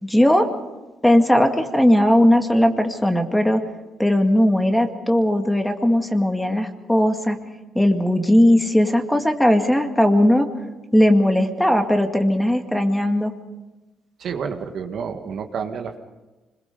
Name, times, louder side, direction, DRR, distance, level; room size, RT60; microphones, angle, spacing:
voice 1, 0.0-0.5 1.0-3.6 4.0-7.4 7.8-10.5 10.9-13.3, left 1 dB, 5° left, 5 dB, 2.2 m, -18 dB
voice 2, 14.2-16.0, right 6 dB, 65° right, 5 dB, 1.8 m, -29 dB
25.5 x 22.0 x 5.4 m, 1.1 s
cardioid pair, 90°, 0 cm